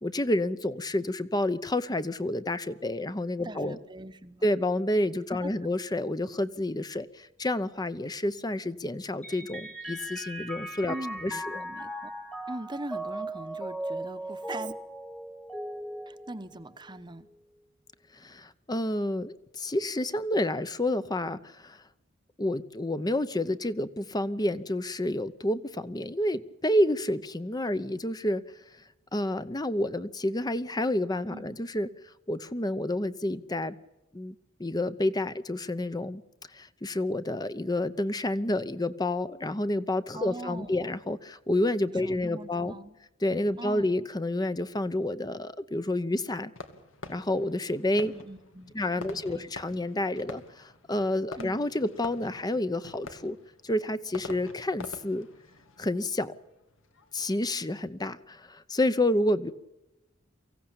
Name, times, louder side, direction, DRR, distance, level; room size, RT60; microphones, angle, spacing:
voice 1, 0.0-3.8 4.4-11.0 11.2-11.6 18.1-21.8 22.4-28.4 29.1-31.9 32.3-33.8 34.1-36.2 36.5-42.7 43.2-46.5 47.1-48.1 48.7-53.4 53.6-55.3 55.8-56.3 57.1-59.5, left 1 dB, 20° left, 13 dB, 0.8 m, -29 dB
voice 2, 3.4-4.4 5.3-5.5 10.9-12.1 12.5-14.7 16.1-17.3 31.3-31.6 40.1-40.9 41.9-43.0 43.6-44.0 48.0-49.5 51.4-51.5, right 2 dB, 25° right, 12 dB, 1.0 m, -41 dB
Mallet percussion, 9.2-17.0, right 1 dB, 5° left, 1.4 m, -38 dB
Fireworks, 46.5-57.1, left 2 dB, 90° left, 2.2 m, -46 dB
24.0 x 16.0 x 8.8 m, 0.97 s
head